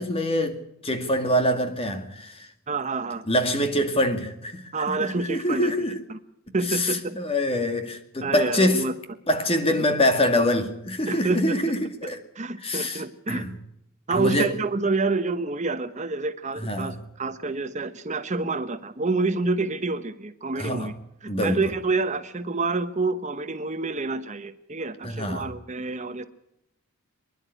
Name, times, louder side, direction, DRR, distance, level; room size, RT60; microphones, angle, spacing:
voice 1, 0.0-2.5 3.3-6.0 6.6-8.8 9.3-12.2 12.6-13.5 14.1-14.5 16.6-16.9 20.6-20.9 21.3-21.6 25.0-25.5, left 1 dB, 25° left, 2.2 m, -25 dB
voice 2, 2.7-3.2 4.7-5.8 6.1-6.2 6.5-7.2 8.2-8.9 11.1-11.6 12.3-13.4 14.1-20.9 21.2-26.3, right 3 dB, 35° right, 0.9 m, -28 dB
25.5 x 11.0 x 9.9 m
head